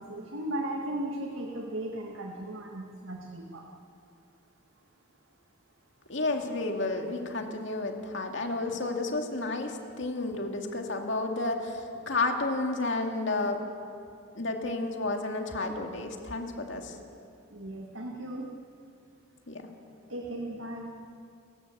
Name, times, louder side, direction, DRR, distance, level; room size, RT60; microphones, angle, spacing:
voice 1, 0.0-3.7 17.0-17.1 17.5-18.5 20.1-20.9, right 1 dB, 75° right, 0 dB, 1.9 m, -36 dB
voice 2, 6.1-13.6 14.3-17.0 19.5-19.7, left 2 dB, 65° left, 3 dB, 2.3 m, -31 dB
29.5 x 14.0 x 8.1 m, 2.5 s
head